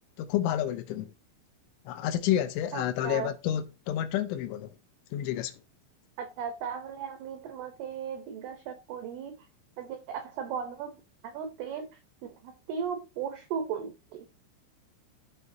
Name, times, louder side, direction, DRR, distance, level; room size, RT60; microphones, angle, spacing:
voice 1, 0.2-1.1 1.9-4.8 5.1-5.6, left 11 dB, 80° left, 2.9 m, -30 dB
voice 2, 2.7-3.3 6.2-9.5 9.8-11.0 11.2-11.9 12.2-14.3, right 7 dB, 85° right, 2.2 m, -36 dB
13.5 x 4.8 x 2.7 m
omnidirectional pair, 5.7 m